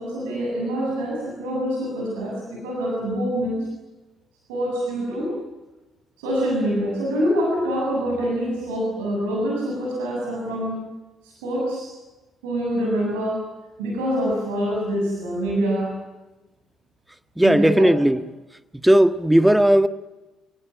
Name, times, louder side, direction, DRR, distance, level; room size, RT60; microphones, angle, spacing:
voice 1, 0.0-3.7 4.5-5.3 6.2-10.8 11.2-11.9 12.4-13.4 13.8-15.9 17.4-17.8, equal, 75° right, -2 dB, 7.4 m, -25 dB
voice 2, 17.3-18.2 18.8-19.9, right 1 dB, 5° right, 11 dB, 1.6 m, -16 dB
29.0 x 19.0 x 9.6 m, 1.1 s
hypercardioid pair, 45°, 0 cm